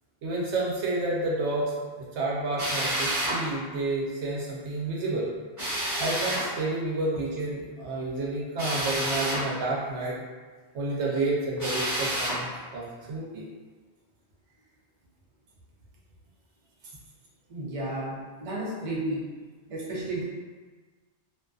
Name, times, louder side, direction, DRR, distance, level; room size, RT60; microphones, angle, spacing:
voice 1, 0.2-5.3 6.0-10.2 10.7-12.5 12.7-13.4, right 2 dB, 85° right, -5 dB, 0.9 m, -30 dB
Drill, 2.6-3.4 5.6-6.5 8.6-9.5 11.6-12.4, right 1 dB, 15° right, 1.1 m, -29 dB
voice 2, 17.5-19.2 19.7-20.2, right 1 dB, 40° right, -6 dB, 0.6 m, -32 dB
2.5 x 2.4 x 2.3 m, 1.4 s
omnidirectional pair, 1.1 m